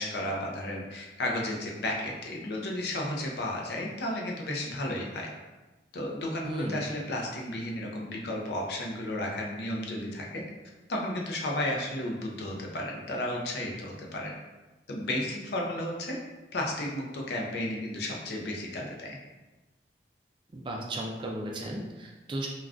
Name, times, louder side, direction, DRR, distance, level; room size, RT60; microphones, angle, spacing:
voice 1, 0.0-5.3 5.9-10.4 10.9-14.3 14.9-16.2 16.5-19.2, left 1 dB, 65° left, -1 dB, 0.5 m, -33 dB
voice 2, 6.4-6.8 20.5-22.5, right 1 dB, 25° right, -1 dB, 0.3 m, -35 dB
3.4 x 2.3 x 2.4 m, 1.1 s
head